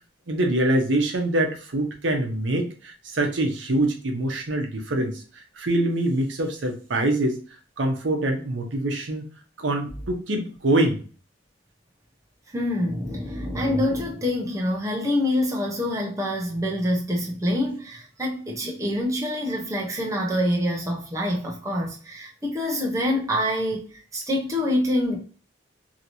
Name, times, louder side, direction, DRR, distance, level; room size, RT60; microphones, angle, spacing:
voice 1, 0.3-7.4 7.8-9.3 9.6-11.0, right 1 dB, 80° right, 0.8 m, -24 dB
voice 2, 12.5-25.2, left 1 dB, 15° right, 0.7 m, -26 dB
2.9 x 2.8 x 2.6 m
head